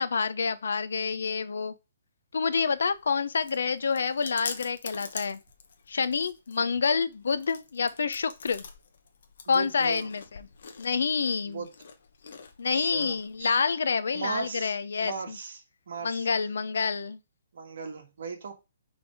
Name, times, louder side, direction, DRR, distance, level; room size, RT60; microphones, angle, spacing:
voice 1, 0.0-1.7 2.3-5.4 5.9-8.6 9.5-10.5 10.8-11.6 12.6-15.4 16.0-17.2, left 5 dB, 70° left, 0.7 m, -28 dB
Chewing mastication, 2.8-13.4, left 5 dB, 45° left, 1.0 m, -45 dB
voice 2, 9.5-10.1 11.4-11.7 12.7-13.5 14.1-14.7 15.0-16.3 17.5-18.5, right 5 dB, 50° right, 1.6 m, -37 dB
6.2 x 3.5 x 4.7 m
hypercardioid pair, 180°, 0 cm